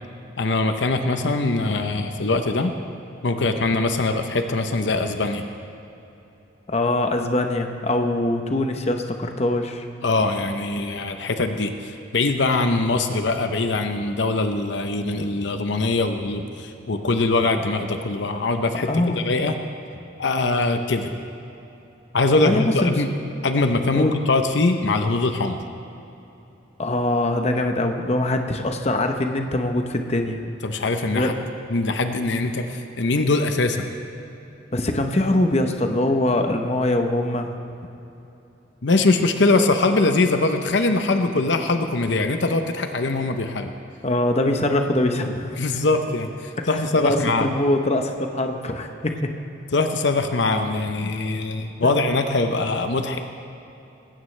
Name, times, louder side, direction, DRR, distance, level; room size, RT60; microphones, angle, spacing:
voice 1, 0.4-2.7 3.2-5.4 10.0-19.5 20.2-21.1 22.1-23.1 23.4-25.6 30.6-31.3 31.7-33.9 38.8-43.7 45.6-47.5 49.7-53.2, left 3 dB, 70° left, 6 dB, 0.8 m, -22 dB
voice 2, 6.7-9.8 18.9-19.2 22.4-22.9 23.9-24.1 26.8-30.4 31.1-31.4 34.7-37.5 44.0-45.8 46.6-49.3 51.0-51.1, left 1 dB, 35° left, 5 dB, 0.9 m, -23 dB
19.0 x 16.5 x 3.3 m, 2.9 s
head